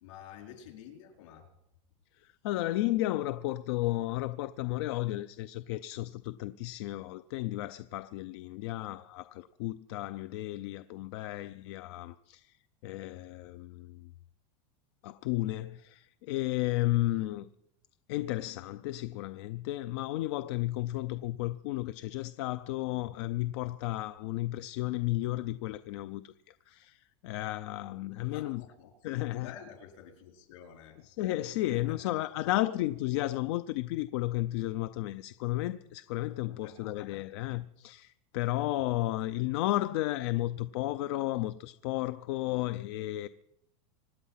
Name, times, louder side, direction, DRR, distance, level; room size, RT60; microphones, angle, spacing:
voice 1, 0.0-1.5 28.2-31.0 31.7-32.1 36.5-37.2, left 8 dB, 75° left, 4.6 m, -50 dB
voice 2, 2.2-12.6 12.8-14.1 15.0-17.5 18.1-28.6 29.0-29.5 31.1-43.3, left 16 dB, 55° left, 0.5 m, -33 dB
25.5 x 9.4 x 5.7 m
supercardioid pair, 165°, 16 cm